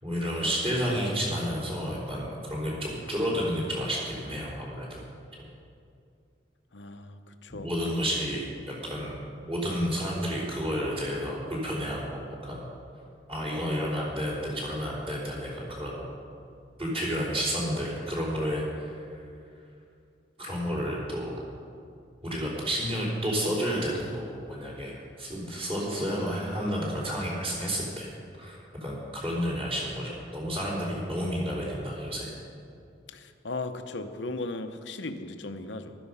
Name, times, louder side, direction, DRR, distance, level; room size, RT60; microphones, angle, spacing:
voice 1, 0.0-5.0 7.5-8.5 8.8-12.6 13.3-16.1 16.8-19.0 20.4-21.3 22.2-28.1 28.4-32.3, equal, 30° right, -4 dB, 3.7 m, -31 dB
voice 2, 6.7-7.7 33.1-36.0, left 2 dB, 75° left, 8 dB, 0.9 m, -37 dB
15.0 x 12.5 x 5.6 m, 2.4 s
head